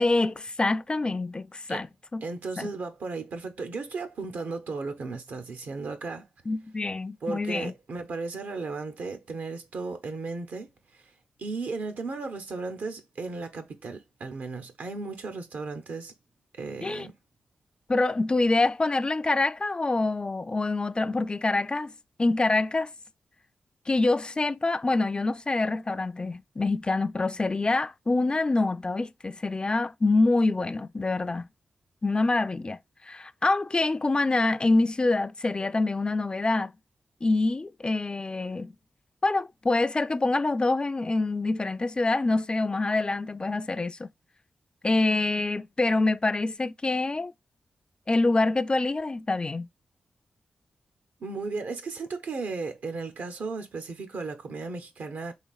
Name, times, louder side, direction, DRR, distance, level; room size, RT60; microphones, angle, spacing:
voice 1, 0.0-1.9 2.1-2.2 2.6-2.7 6.5-7.7 16.8-17.1 17.9-21.9 22.2-22.9 23.9-31.5 32.0-36.7 37.2-38.7 39.2-44.1 44.8-47.3 48.1-49.7, left 2 dB, 30° left, 0.3 m, -26 dB
voice 2, 2.2-6.3 7.2-11.1 11.4-16.1 16.6-17.1 51.2-55.3, right 3 dB, 70° right, 0.7 m, -35 dB
4.1 x 3.1 x 2.4 m
supercardioid pair, 40°, 3 cm